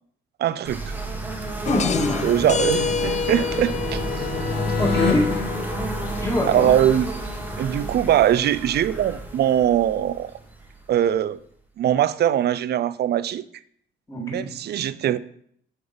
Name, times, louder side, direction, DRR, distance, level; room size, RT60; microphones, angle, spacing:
voice 1, 0.4-0.9 2.2-4.3 6.5-7.1 7.6-10.3 10.9-11.4 11.8-13.4 14.2-15.2, right 11 dB, 55° right, 0.4 m, -21 dB
sound 1, 0.7-11.3, right 2 dB, 10° right, 1.2 m, -31 dB
sound 2, 1.1-6.8, left 4 dB, 55° left, 1.6 m, -30 dB
sound 3, 1.6-7.9, left 6 dB, 35° left, 0.4 m, -30 dB
voice 2, 1.7-2.3 4.8-5.3 6.2-6.7 14.1-14.5, left 1 dB, 15° left, 2.2 m, -24 dB
6.9 x 4.0 x 5.2 m
cardioid pair, 90°, 20 cm